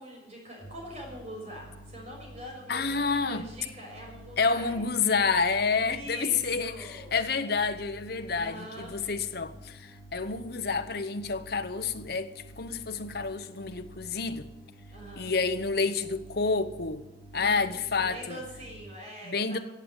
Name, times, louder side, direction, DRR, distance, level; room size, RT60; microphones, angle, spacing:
voice 1, 0.0-4.9 5.8-7.2 8.3-8.9 14.9-15.3 17.3-19.6, equal, 35° right, 6.3 m, -43 dB
sound 1, 0.6-18.8, equal, 10° left, 6.1 m, -49 dB
voice 2, 2.7-3.4 4.4-6.7 7.1-14.5 15.2-17.1 17.3-18.4 19.3-19.6, left 4 dB, 55° left, 0.9 m, -29 dB
15.0 x 8.1 x 9.3 m
head